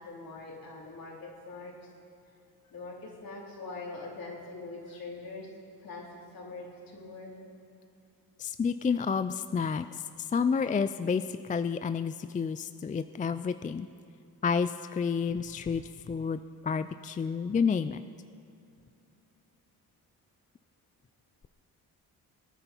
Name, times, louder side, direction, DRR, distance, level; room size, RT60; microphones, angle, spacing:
voice 1, 0.0-1.8 2.7-5.5 5.8-6.1 6.3-7.3, left 3 dB, 60° left, -3 dB, 4.1 m, -43 dB
voice 2, 8.4-9.9 10.2-13.9 14.4-18.0, left 6 dB, 20° left, 11 dB, 0.4 m, -30 dB
24.0 x 9.5 x 4.5 m, 2.6 s
cardioid pair, 70°, 38 cm